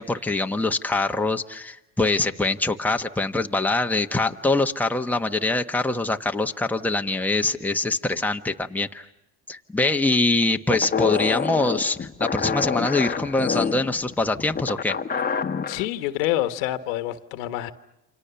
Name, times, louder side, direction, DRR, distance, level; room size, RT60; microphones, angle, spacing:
voice 1, 0.0-9.1 9.5-15.0, left 2 dB, 5° left, 4 dB, 1.2 m, -24 dB
sound 1, 10.7-15.8, left 6 dB, 25° left, 1.2 m, -27 dB
voice 2, 15.7-17.7, left 14 dB, 90° left, 10 dB, 1.5 m, -27 dB
29.0 x 26.0 x 7.0 m, 0.91 s
supercardioid pair, 90°, 39 cm